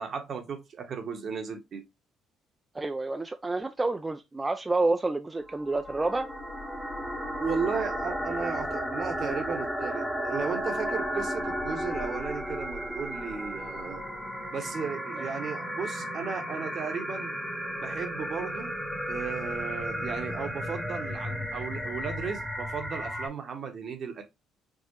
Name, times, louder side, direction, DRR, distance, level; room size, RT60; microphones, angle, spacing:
voice 1, 0.0-1.9 7.4-14.1 14.5-17.3 17.8-18.7 19.1-24.2, right 5 dB, 55° right, 1.0 m, -35 dB
voice 2, 2.7-6.3, right 2 dB, 20° right, 0.4 m, -29 dB
sound 1, 5.4-23.3, equal, ahead, 0.9 m, -34 dB
4.6 x 2.0 x 2.9 m
supercardioid pair, 70°, 0 cm